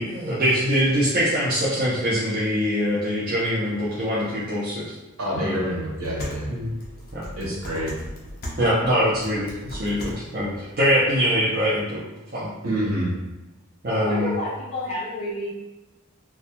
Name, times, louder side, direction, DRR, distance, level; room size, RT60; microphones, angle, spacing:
voice 1, 0.0-4.9 5.4-5.6 6.5-6.7 7.1-7.3 8.6-12.0 12.3-12.5 13.8-14.3, equal, 40° right, -9 dB, 0.4 m, -23 dB
voice 2, 5.2-6.5 7.4-7.9 12.6-13.1, equal, 75° right, -4 dB, 0.8 m, -27 dB
sound 1, 6.0-11.1, equal, 45° left, 0.5 m, -38 dB
voice 3, 13.9-15.5, left 1 dB, 25° left, -8 dB, 0.8 m, -29 dB
2.2 x 2.0 x 2.8 m, 1.0 s
head